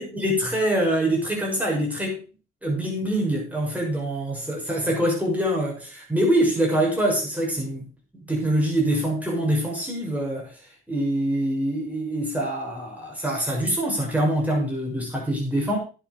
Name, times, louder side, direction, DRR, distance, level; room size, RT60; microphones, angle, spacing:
voice 1, 0.0-2.2 2.6-7.9 8.1-10.5 10.9-15.8, right 1 dB, 5° right, -3 dB, 6.6 m, -24 dB
10.0 x 8.4 x 5.3 m, 0.35 s
cardioid pair, 90°, 30 cm